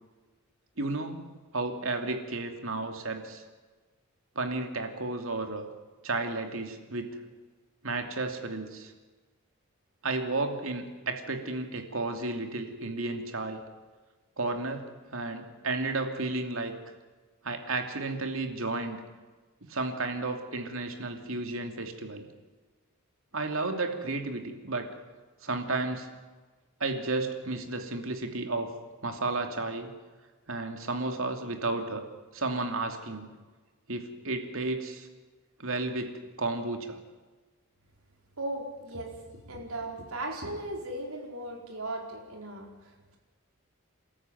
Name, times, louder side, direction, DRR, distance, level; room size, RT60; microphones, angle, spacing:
voice 1, 0.8-1.3 1.5-3.4 4.3-5.7 6.0-7.2 7.8-8.9 10.0-13.6 14.4-16.9 17.4-19.0 19.6-22.3 23.3-24.9 25.4-26.1 26.8-28.7 29.0-29.9 30.5-32.0 32.3-33.3 33.9-35.1 35.6-37.0, right 2 dB, 70° right, 5 dB, 2.8 m, -32 dB
voice 2, 38.4-39.1 39.4-42.7, right 1 dB, 85° right, 1 dB, 4.5 m, -37 dB
29.0 x 14.0 x 9.3 m, 1.3 s
head